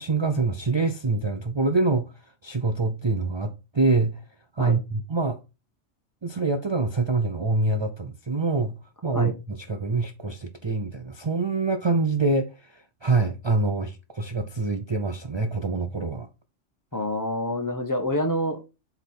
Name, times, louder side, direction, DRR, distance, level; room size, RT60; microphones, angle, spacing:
voice 1, 0.0-2.1 2.4-4.2 4.6-5.4 6.2-8.8 9.0-16.3, right 3 dB, 50° right, 0.3 m, -25 dB
voice 2, 16.9-18.7, left 1 dB, 15° left, 1.1 m, -27 dB
8.0 x 3.5 x 4.2 m
omnidirectional pair, 1.3 m